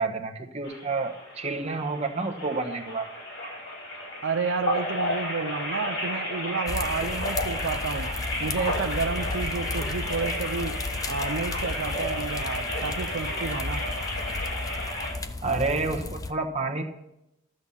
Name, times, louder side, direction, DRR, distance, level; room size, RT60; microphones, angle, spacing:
voice 1, 0.0-3.1 15.4-16.8, right 3 dB, 30° right, 2 dB, 1.1 m, -29 dB
sound 1, 0.6-15.1, left 1 dB, 60° left, 4.9 m, -32 dB
voice 2, 4.2-8.1 8.4-10.8 11.1-13.9, right 4 dB, 65° right, 7 dB, 0.5 m, -31 dB
sound 2, 6.7-16.3, left 3 dB, 15° left, 0.4 m, -34 dB
12.0 x 7.9 x 5.6 m, 0.87 s
head